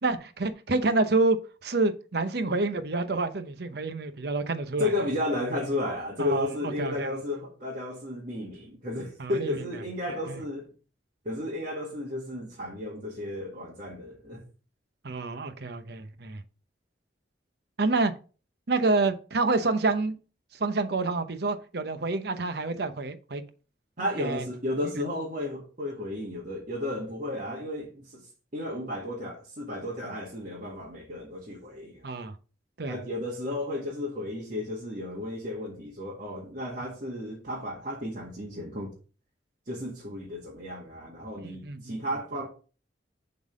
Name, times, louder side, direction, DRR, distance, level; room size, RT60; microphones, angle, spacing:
voice 1, 0.0-4.9 6.2-7.1 9.2-9.6 10.3-10.4 15.0-16.4 17.8-18.1 18.7-20.2 20.5-23.4 24.2-24.4 32.0-32.3 32.8-33.0 41.6-42.0, right 3 dB, 65° right, 0.8 m, -28 dB
voice 2, 4.8-10.7 11.2-14.4 24.0-28.3 28.5-32.0 32.9-38.9 39.7-42.5, left 1 dB, 50° right, 1.8 m, -33 dB
7.3 x 3.9 x 5.0 m
head